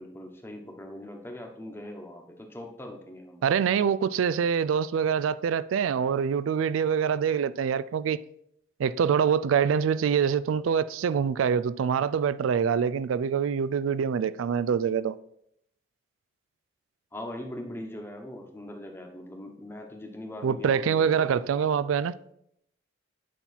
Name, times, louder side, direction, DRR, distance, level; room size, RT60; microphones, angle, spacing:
voice 1, 0.0-3.6 17.1-21.7, left 1 dB, 10° left, 1.1 m, -41 dB
voice 2, 3.4-8.2 8.8-15.2 20.4-22.1, right 7 dB, 90° right, 0.3 m, -25 dB
9.3 x 5.6 x 4.2 m
head